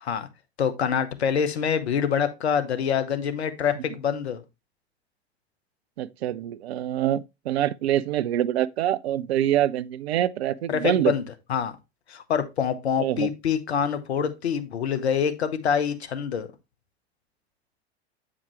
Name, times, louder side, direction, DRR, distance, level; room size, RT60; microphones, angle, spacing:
voice 1, 0.6-4.4 10.7-11.2 11.5-11.8 12.1-16.5, left 7 dB, 80° left, 1.1 m, -25 dB
voice 2, 6.0-11.1 13.0-13.3, right 12 dB, 75° right, 0.6 m, -25 dB
8.6 x 4.9 x 3.2 m
hypercardioid pair, 80°, 32 cm